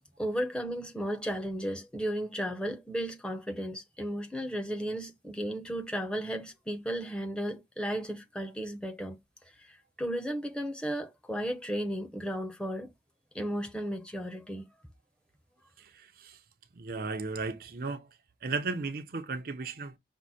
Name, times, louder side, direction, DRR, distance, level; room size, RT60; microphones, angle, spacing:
voice 1, 0.2-9.2 9.7-12.9 13.3-14.7, equal, 5° left, 0.8 m, -34 dB
voice 2, 15.8-16.4 16.7-18.1 18.4-20.0, right 4 dB, 55° right, 0.6 m, -35 dB
6.1 x 2.1 x 4.1 m
head